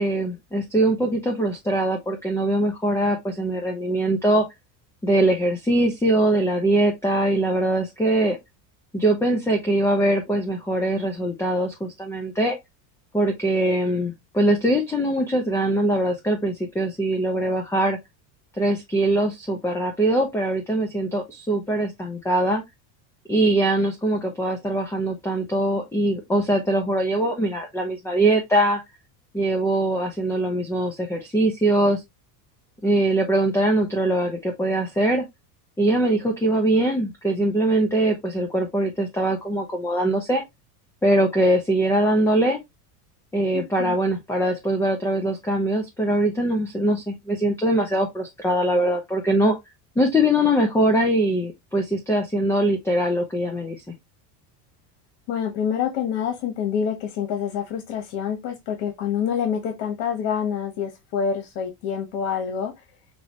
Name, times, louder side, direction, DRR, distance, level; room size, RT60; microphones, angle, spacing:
voice 1, 0.0-4.4 5.0-8.4 8.9-12.6 13.1-18.0 18.6-22.6 23.3-28.8 29.3-32.0 32.8-35.2 35.8-40.4 41.0-42.6 43.3-49.6 50.0-53.8, right 1 dB, 5° left, 0.8 m, -22 dB
voice 2, 43.5-44.0 55.3-62.7, left 7 dB, 65° left, 1.3 m, -27 dB
6.1 x 2.3 x 3.0 m
supercardioid pair, 120°, 47 cm